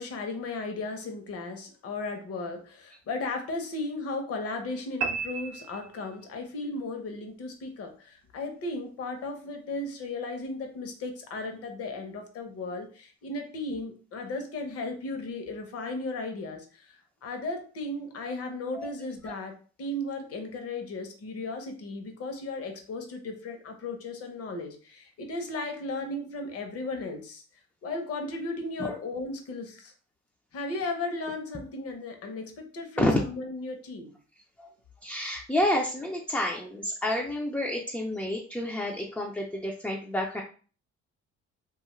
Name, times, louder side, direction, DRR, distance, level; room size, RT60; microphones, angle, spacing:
voice 1, 0.0-27.4 27.8-29.9 30.5-34.1, left 2 dB, 55° left, 5 dB, 0.8 m, -35 dB
sound 1, 5.0-6.5, right 5 dB, 80° right, 0.5 m, -34 dB
voice 2, 35.0-40.4, left 1 dB, 5° left, -1 dB, 0.4 m, -29 dB
2.6 x 2.3 x 3.0 m, 0.38 s
cardioid pair, 110°, 29 cm